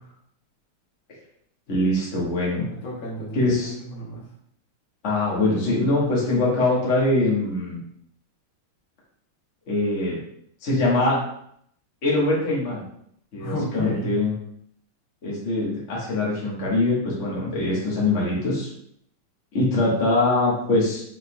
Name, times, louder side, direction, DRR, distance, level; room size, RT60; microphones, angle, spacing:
voice 1, 1.7-2.7 3.3-3.7 5.0-7.8 9.7-10.2 10.6-11.2 12.0-12.8 13.3-14.3 15.2-18.7 19.5-21.0, left 2 dB, 40° left, -5 dB, 1.4 m, -23 dB
voice 2, 2.8-4.2 13.4-14.1, equal, 70° left, -4 dB, 2.0 m, -32 dB
5.8 x 3.5 x 2.3 m, 0.68 s
omnidirectional pair, 2.3 m